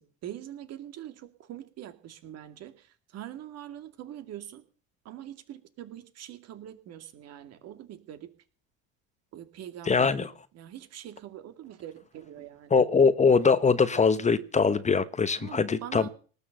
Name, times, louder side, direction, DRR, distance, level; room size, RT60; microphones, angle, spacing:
voice 1, 0.0-4.6 5.0-8.3 9.3-10.3 10.5-12.7 15.4-16.1, right 11 dB, 50° right, 2.4 m, -43 dB
voice 2, 9.9-10.3 12.7-16.1, left 5 dB, 20° left, 1.1 m, -22 dB
19.0 x 6.9 x 8.9 m
hypercardioid pair, 80°, 32 cm